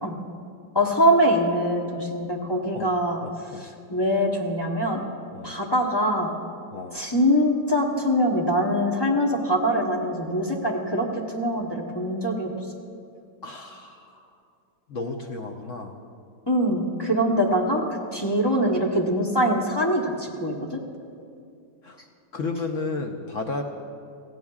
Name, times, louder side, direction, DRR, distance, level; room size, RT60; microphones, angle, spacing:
voice 1, 0.7-3.2 3.6-5.0 5.4-6.3 6.9-12.5 16.5-20.8, equal, 20° left, -1 dB, 0.7 m, -23 dB
voice 2, 3.2-3.6 5.3-5.5 6.7-7.0 13.4-14.3 14.9-15.9 21.8-22.0 22.3-23.6, left 3 dB, 60° left, 3 dB, 0.9 m, -33 dB
17.0 x 15.5 x 2.4 m, 2.4 s
omnidirectional pair, 1.9 m